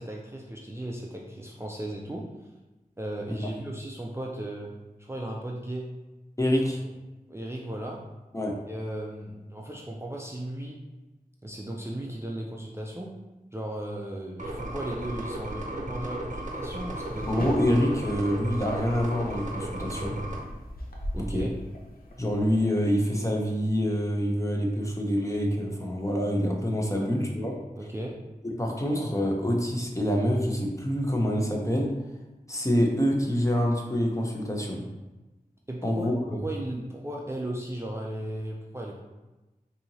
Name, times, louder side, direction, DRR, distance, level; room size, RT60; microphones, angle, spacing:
voice 1, 0.0-2.3 3.0-6.0 7.3-8.1 8.7-10.8 11.4-13.2 13.5-17.3 21.1-21.5 26.9-27.1 27.7-28.2 35.7-36.1 36.3-39.0, right 1 dB, 15° right, -2 dB, 0.4 m, -36 dB
voice 2, 6.4-6.8 8.3-8.5 17.3-20.2 21.2-21.5 22.2-27.5 28.6-31.9 32.5-34.8 35.8-36.4, equal, 20° left, 0 dB, 0.7 m, -26 dB
sound 1, 14.4-20.4, right 1 dB, 55° right, 0.7 m, -35 dB
sound 2, 16.5-22.6, left 1 dB, 75° left, 0.7 m, -40 dB
4.3 x 2.7 x 2.8 m, 1.1 s
wide cardioid pair, 40°, 15 cm